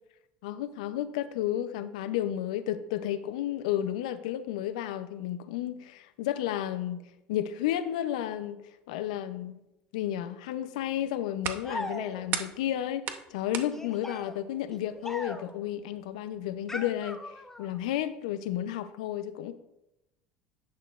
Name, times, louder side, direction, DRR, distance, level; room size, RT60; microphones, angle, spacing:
voice 1, 0.4-7.0 7.3-8.6 8.9-9.6 9.9-19.5, left 12 dB, 85° left, 0.5 m, -32 dB
sound 1, 10.8-16.7, right 9 dB, 55° right, 0.8 m, -41 dB
sound 2, 11.6-12.5 13.7-15.7 16.7-17.8, left 1 dB, 10° left, 0.7 m, -40 dB
10.0 x 6.6 x 2.4 m
supercardioid pair, 90°, 4 cm